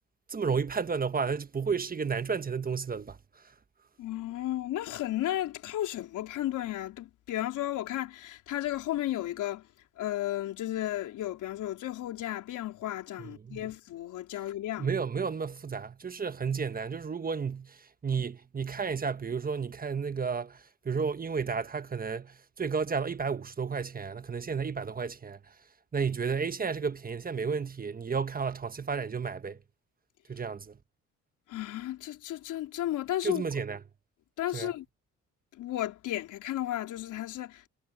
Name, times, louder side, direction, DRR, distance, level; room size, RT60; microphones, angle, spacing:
voice 1, 0.3-3.2 13.2-13.6 14.8-25.5 25.9-29.6 30.3-30.8 33.2-33.8 34.5-34.7, right 5 dB, 30° right, 1.2 m, -32 dB
voice 2, 4.0-9.7 10.0-14.9 31.5-33.4 34.4-34.9 35.5-37.7, left 13 dB, 85° left, 4.0 m, -34 dB
cardioid pair, 90°, 30 cm